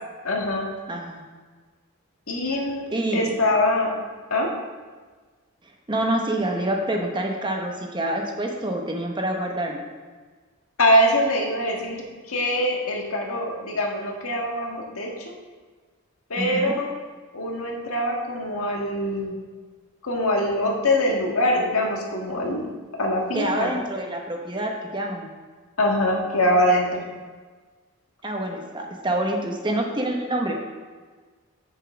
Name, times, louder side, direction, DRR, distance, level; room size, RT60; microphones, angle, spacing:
voice 1, 0.2-0.7 2.3-2.8 3.1-3.9 4.3-4.5 10.8-15.3 16.3-16.9 17.3-19.3 20.0-22.7 23.0-23.7 25.8-27.0, left 1 dB, 75° left, -1 dB, 1.6 m, -23 dB
voice 2, 0.9-1.2 2.9-3.3 5.9-9.8 16.4-16.7 23.3-25.3 28.2-30.5, right 1 dB, 20° right, 1 dB, 0.9 m, -27 dB
8.3 x 6.7 x 4.9 m, 1.4 s
head